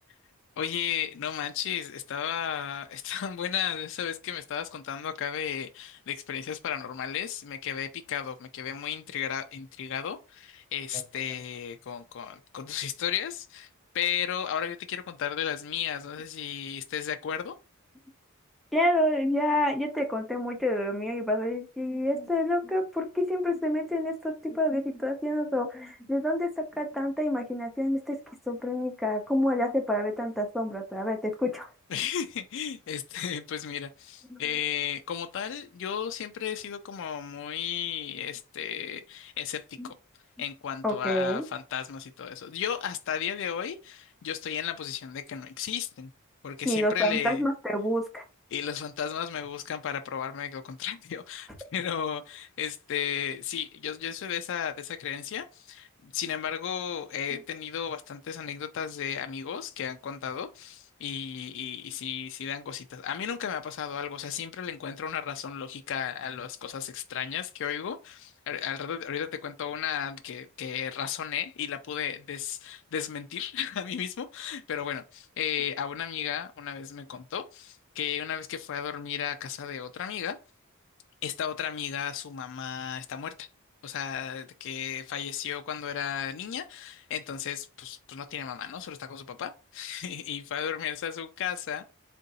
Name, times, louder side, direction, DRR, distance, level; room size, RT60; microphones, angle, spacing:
voice 1, 0.6-13.7 13.9-17.6 31.9-40.0 40.4-46.1 46.4-47.4 48.5-80.4 81.2-83.5 83.8-91.8, left 8 dB, 60° left, 0.4 m, -34 dB
voice 2, 18.7-28.2 28.5-31.7 34.3-34.4 39.8-39.9 40.8-41.5 46.6-48.2, left 1 dB, ahead, 0.7 m, -28 dB
3.7 x 2.5 x 4.0 m
head